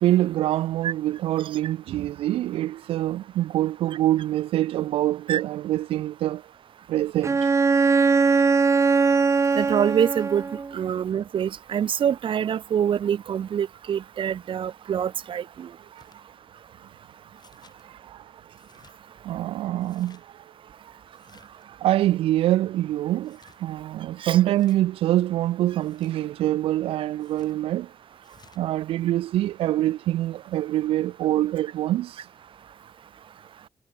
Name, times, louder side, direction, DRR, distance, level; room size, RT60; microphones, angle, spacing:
voice 1, 0.0-6.4 6.9-7.5 7.8-8.4 15.9-16.1 17.8-18.4 19.2-20.3 20.8-20.9 21.7-27.9 28.6-32.3, right 14 dB, 85° right, 0.4 m, -25 dB
Bowed string instrument, 7.2-10.7, right 4 dB, 30° right, 0.5 m, -20 dB
voice 2, 9.6-10.4 10.7-15.7 24.2-24.4, right 9 dB, 65° right, 0.8 m, -25 dB
sound 1, 15.9-16.2 17.4-17.8 18.5-19.0 19.8-20.2 21.1-21.7 23.2-23.6 24.4-24.8 25.8-26.2 27.2-27.6 28.2-28.6, left 5 dB, 50° left, 6.6 m, -57 dB
cardioid pair, 60°, 9 cm